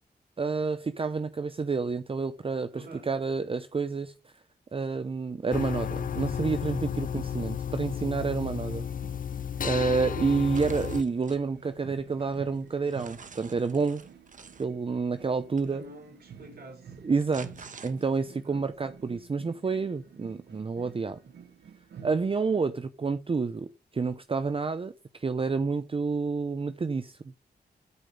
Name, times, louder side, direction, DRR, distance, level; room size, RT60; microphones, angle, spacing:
voice 1, 0.4-4.3 4.7-8.9 9.6-14.0 14.6-15.8 17.0-21.2 22.0-27.3, right 4 dB, 35° right, 0.7 m, -29 dB
voice 2, 2.7-3.1 8.0-8.4 15.6-17.0 18.3-18.7, right 1 dB, 65° right, 4.3 m, -48 dB
sound 1, 5.5-11.0, left 8 dB, 55° left, 0.4 m, -33 dB
sound 2, 6.1-22.7, right 6 dB, 85° right, 1.1 m, -51 dB
sound 3, 10.5-11.4 12.0-14.7 15.6-15.7 16.9-18.3, right 5 dB, 50° right, 1.1 m, -48 dB
12.5 x 5.1 x 7.8 m
wide cardioid pair, 100°, 17 cm